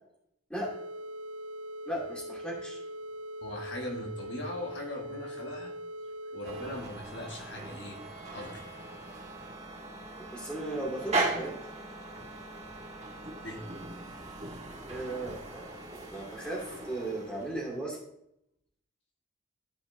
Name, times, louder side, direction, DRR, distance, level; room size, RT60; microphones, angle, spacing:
sound 1, 0.6-6.8, equal, 85° right, 0.4 m, -41 dB
voice 1, 1.8-2.8 10.3-11.6 14.9-18.0, right 1 dB, 5° left, -4 dB, 2.5 m, -36 dB
voice 2, 3.4-5.7 6.3-8.0 8.3-8.7 13.4-13.6 14.1-14.2, left 1 dB, 60° left, 1 dB, 1.5 m, -40 dB
sound 2, 6.4-17.8, right 2 dB, 35° right, 1.6 m, -39 dB
12.5 x 5.2 x 2.6 m, 0.77 s
head